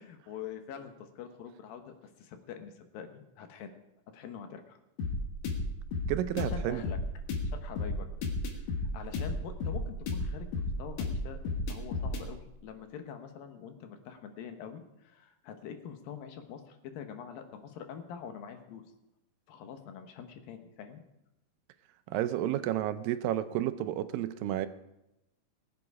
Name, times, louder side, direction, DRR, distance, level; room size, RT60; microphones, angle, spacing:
voice 1, 0.0-3.8 4.1-4.8 6.4-7.0 7.4-8.1 8.5-18.8 19.5-21.0, left 7 dB, 80° left, 7 dB, 2.9 m, -45 dB
sound 1, 5.0-12.3, left 2 dB, 60° left, 2.6 m, -33 dB
voice 2, 6.1-6.8 22.1-24.7, right 12 dB, 80° right, 12 dB, 2.3 m, -31 dB
19.5 x 7.8 x 4.8 m, 0.88 s
omnidirectional pair, 4.1 m